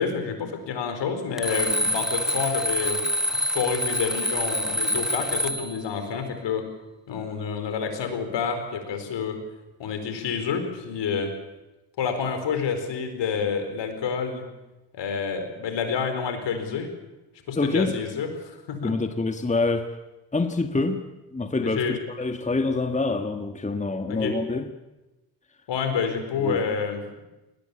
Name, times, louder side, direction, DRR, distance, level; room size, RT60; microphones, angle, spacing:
voice 1, 0.0-3.0 3.5-6.7 7.1-9.4 9.8-11.3 12.0-14.4 14.9-16.9 17.5-18.9 21.6-22.0 24.1-24.4 25.7-27.2, left 6 dB, 60° left, 7 dB, 4.6 m, -28 dB
Alarm, 1.4-5.8, equal, ahead, 1.1 m, -26 dB
voice 2, 17.5-18.0 18.8-20.0 20.3-21.0 21.3-24.7 26.4-26.7, left 3 dB, 15° left, 7 dB, 1.6 m, -26 dB
20.5 x 19.0 x 8.7 m, 1.0 s
hypercardioid pair, 65°, 48 cm